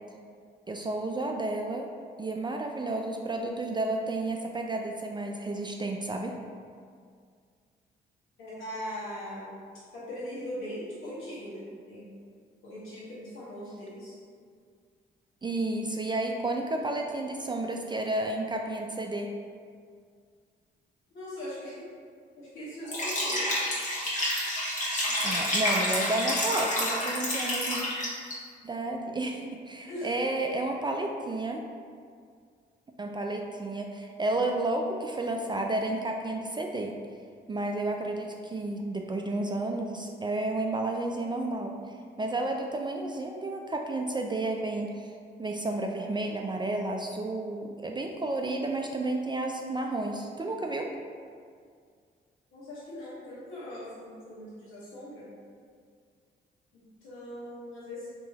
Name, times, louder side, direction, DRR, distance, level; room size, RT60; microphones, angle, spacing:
voice 1, 0.7-1.9 2.2-6.3 15.4-19.3 25.2-27.8 28.6-31.6 33.0-37.0 37.5-41.7 42.2-45.1 45.4-50.9, right 2 dB, 25° right, 2 dB, 0.3 m, -31 dB
voice 2, 8.4-9.5 9.9-12.1 12.6-14.1 21.1-21.9 22.3-23.4 25.0-25.5 29.8-30.3 52.5-55.3 56.7-58.1, left 1 dB, 80° left, -9 dB, 1.4 m, -40 dB
Liquid, 22.8-28.3, left 1 dB, 40° left, 1.2 m, -29 dB
3.1 x 3.0 x 3.4 m, 2.1 s
supercardioid pair, 55°, 20 cm